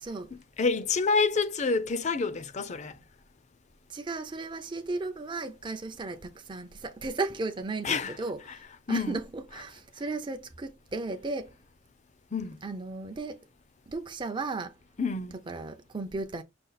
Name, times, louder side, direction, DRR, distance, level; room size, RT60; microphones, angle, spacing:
voice 1, 0.3-3.0 7.8-8.2 8.5-8.6 8.9-9.2 12.3-12.6 15.0-15.3, left 4 dB, 35° left, 0.5 m, -28 dB
voice 2, 3.9-8.6 8.9-11.5 12.6-13.4 13.9-14.7 15.5-16.4, right 3 dB, 25° right, 0.5 m, -35 dB
5.3 x 2.4 x 3.9 m
head